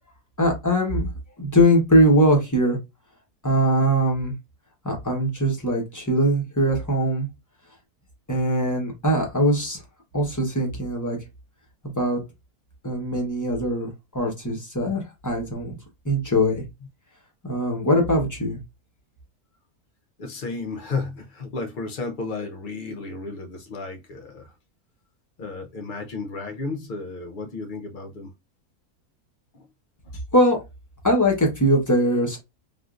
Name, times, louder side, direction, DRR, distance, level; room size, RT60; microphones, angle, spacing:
voice 1, 0.4-1.1 1.4-2.8 3.4-4.3 4.8-7.3 8.3-9.8 10.1-11.2 11.9-12.2 12.8-15.8 16.0-16.6 17.5-18.6 30.3-30.6 31.0-32.4, equal, 15° left, 0.8 m, -21 dB
voice 2, 20.2-24.5 25.4-28.3 29.5-29.7 30.1-30.2, left 3 dB, 70° left, 0.4 m, -33 dB
3.5 x 2.4 x 2.4 m
omnidirectional pair, 1.6 m